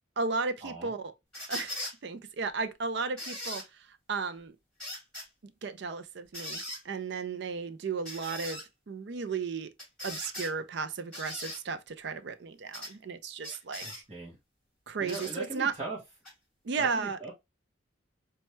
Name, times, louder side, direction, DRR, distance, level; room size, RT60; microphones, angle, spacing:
voice 1, 0.2-1.1 1.5-1.7 2.0-4.6 5.4-9.7 10.0-14.0 14.9-15.8 16.6-17.2, right 5 dB, 55° right, 0.4 m, -34 dB
sound 1, 1.3-2.0 3.2-3.7 4.8-5.3 6.3-6.8 8.1-8.6 9.8-10.5 11.1-11.6 12.7-12.9 13.4-14.0 15.1-15.3 16.2-16.3, left 1 dB, 5° left, 2.4 m, -39 dB
voice 2, 15.0-16.0 16.8-17.3, right 2 dB, 30° right, 0.9 m, -39 dB
4.3 x 2.2 x 3.0 m
head